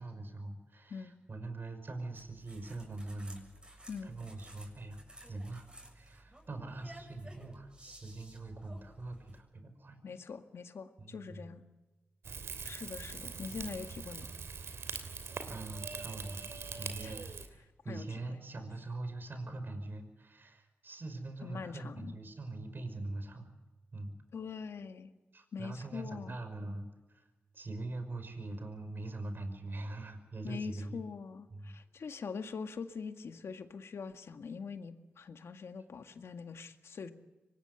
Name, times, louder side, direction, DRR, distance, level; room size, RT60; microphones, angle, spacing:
voice 1, 0.0-5.7 5.9-10.0 11.0-11.6 12.5-12.6 15.5-16.4 16.8-23.5 23.9-24.1 25.3-27.3 27.5-31.0 31.5-31.8, right 2 dB, 50° right, 7 dB, 5.4 m, -43 dB
sound 1, 2.1-9.4, right 1 dB, 20° right, 7.2 m, -55 dB
voice 2, 10.0-11.6 12.6-14.3 17.0-17.1 17.6-18.2 21.4-22.2 24.3-25.1 25.5-26.4 30.4-37.1, left 5 dB, 75° left, 7 dB, 1.9 m, -43 dB
Rain / Fire, 12.2-17.5, right 5 dB, 80° right, 3.0 m, -42 dB
24.0 x 20.5 x 8.1 m, 1.1 s
cardioid pair, 55°, 4 cm